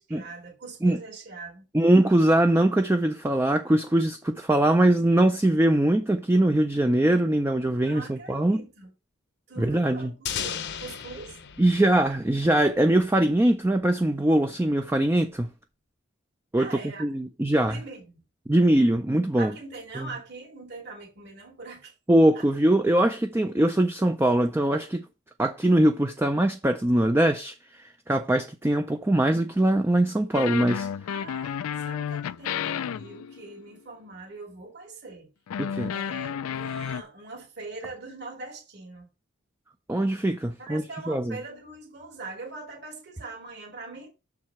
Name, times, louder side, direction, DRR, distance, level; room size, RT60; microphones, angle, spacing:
voice 1, 0.0-1.7 7.8-8.9 9.5-10.1 10.4-11.4 16.6-17.1 17.6-18.2 19.4-21.9 22.3-22.5 31.1-35.3 35.9-39.1 40.6-44.1, right 3 dB, 50° right, 2.4 m, -42 dB
voice 2, 1.7-8.6 9.6-10.1 11.6-15.5 16.5-17.8 18.5-19.5 20.0-20.1 22.1-25.1 25.4-30.9 35.6-35.9 39.9-41.3, right 1 dB, 10° right, 0.4 m, -22 dB
sound 1, 10.3-13.0, left 8 dB, 50° left, 0.7 m, -36 dB
sound 2, 30.3-33.7 35.5-37.0, left 8 dB, 80° left, 0.4 m, -32 dB
6.5 x 4.7 x 5.7 m
head